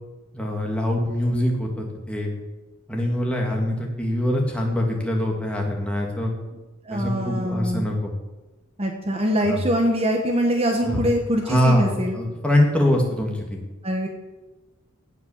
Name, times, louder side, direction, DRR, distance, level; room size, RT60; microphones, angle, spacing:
voice 1, 0.3-2.3 2.9-6.3 6.9-8.1 9.4-9.6 10.8-11.0 11.4-11.9 12.1-13.6, left 1 dB, 5° left, -1 dB, 2.4 m, -23 dB
voice 2, 6.9-7.9 8.8-12.2 13.8-14.1, equal, 30° right, 2 dB, 1.4 m, -23 dB
17.5 x 6.0 x 7.4 m, 1.1 s
head